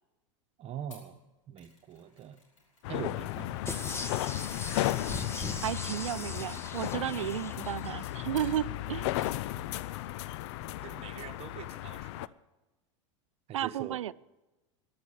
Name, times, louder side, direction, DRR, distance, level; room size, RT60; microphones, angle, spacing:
voice 1, 0.6-1.2 1.5-2.4 2.9-3.6 9.6-9.7 10.8-12.3 13.5-14.0, right 10 dB, 40° right, 9 dB, 1.2 m, -43 dB
Mechanisms, 0.9-9.5 9.8-10.3 10.5-10.6, left 2 dB, 90° left, 4.7 m, -60 dB
sound 1, 2.8-12.3, left 15 dB, 65° left, 0.5 m, -35 dB
sound 2, 3.6-8.1 8.5-8.6, left 3 dB, 15° left, 1.2 m, -40 dB
voice 2, 5.6-9.1 13.5-14.1, right 11 dB, 90° right, 19 dB, 0.4 m, -33 dB
14.0 x 11.5 x 7.5 m, 1.1 s
hypercardioid pair, 95°, 16 cm